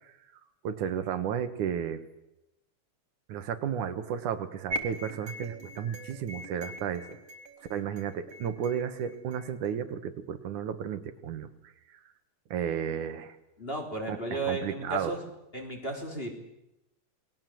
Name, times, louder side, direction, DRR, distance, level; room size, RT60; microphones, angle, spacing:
voice 1, 0.6-2.0 3.3-7.2 7.7-11.5 12.5-13.4 14.1-15.1, right 8 dB, 90° right, 9 dB, 3.0 m, -33 dB
sound 1, 4.7-9.7, right 1 dB, 45° right, 3.0 m, -41 dB
voice 2, 13.6-15.3 15.5-16.4, right 2 dB, 20° left, 2 dB, 4.1 m, -34 dB
28.5 x 20.5 x 7.8 m, 0.90 s
omnidirectional pair, 3.4 m